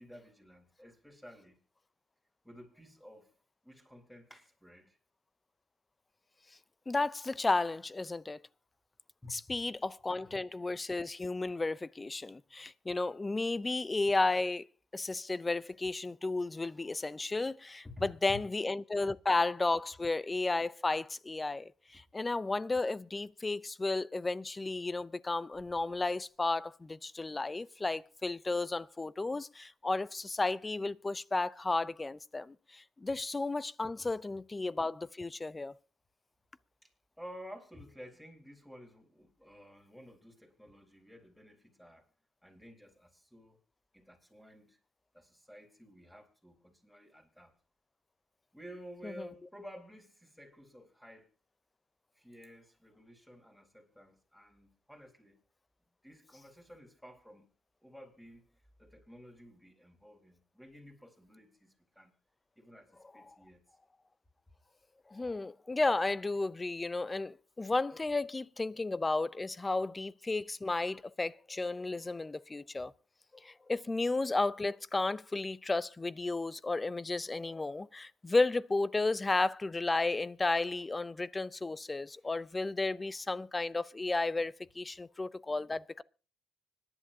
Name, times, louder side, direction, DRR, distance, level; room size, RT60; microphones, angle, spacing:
voice 1, 0.0-1.6 2.4-3.3 3.6-5.0 9.2-9.4 10.2-10.3 17.8-18.4 34.0-34.1 36.8-36.9 37.2-42.1 42.4-43.6 43.9-44.8 45.1-47.5 48.5-51.3 52.1-55.4 56.0-57.5 57.8-62.1 62.6-63.6, left 1 dB, 5° left, 4.0 m, -52 dB
voice 2, 6.9-8.4 9.3-14.6 14.9-35.7 49.0-49.3 65.1-72.9 73.3-86.0, left 3 dB, 20° left, 0.5 m, -33 dB
25.0 x 10.5 x 2.7 m
cardioid pair, 90°, 0 cm